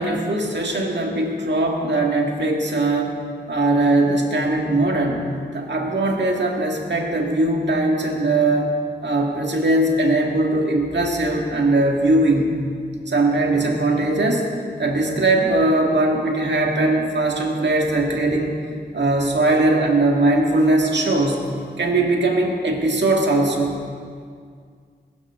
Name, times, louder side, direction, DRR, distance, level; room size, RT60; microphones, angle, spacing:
voice 1, 0.0-3.2 3.5-8.7 9.0-12.6 13.1-14.5 14.8-18.6 18.9-21.5 21.8-23.8, right 2 dB, 80° right, 0 dB, 2.0 m, -20 dB
21.5 x 12.0 x 3.7 m, 2.1 s
cardioid pair, 45°, 18 cm